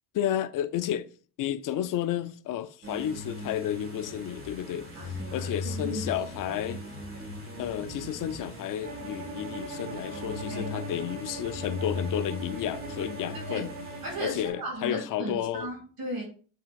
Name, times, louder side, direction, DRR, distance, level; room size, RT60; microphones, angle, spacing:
voice 1, 0.1-1.1 1.4-4.9 5.3-6.8 7.6-13.7 14.2-15.7, left 11 dB, 45° left, 0.5 m, -32 dB
sound 1, 2.8-14.5, left 2 dB, 30° right, 1.8 m, -39 dB
voice 2, 5.0-6.1 6.4-6.6 10.5-10.8 13.5-13.7 14.0-16.3, equal, 50° right, 2.0 m, -36 dB
Bowed string instrument, 8.8-14.5, right 3 dB, 85° right, 1.3 m, -41 dB
6.2 x 3.5 x 2.4 m
supercardioid pair, 95°, 46 cm